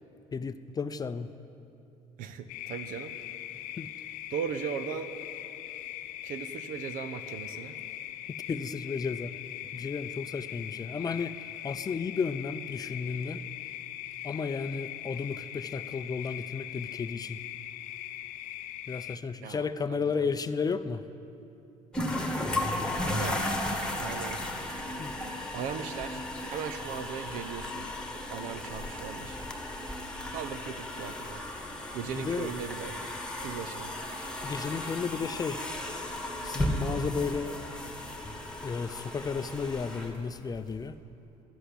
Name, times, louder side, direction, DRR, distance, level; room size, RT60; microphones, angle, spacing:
voice 1, 0.3-1.3 3.8-3.9 8.5-9.3 9.7-11.4 11.6-13.4 14.2-17.4 18.9-21.0 25.0-25.1 32.1-32.5 34.4-35.6 36.4-37.6 38.6-41.0, left 5 dB, 25° left, 12 dB, 0.5 m, -33 dB
voice 2, 2.2-3.1 4.3-5.2 6.2-7.7 19.4-20.3 23.0-23.4 24.0-24.4 25.5-26.2 26.5-27.9 28.3-29.4 30.3-31.4 31.9-32.9 33.4-33.9, right 7 dB, 75° right, 10 dB, 0.8 m, -38 dB
sound 1, 2.5-19.2, left 13 dB, 80° left, 0.5 m, -41 dB
sound 2, 21.9-40.8, left 1 dB, 5° left, 1.5 m, -35 dB
12.5 x 7.9 x 8.4 m, 2.8 s
supercardioid pair, 90°, 14 cm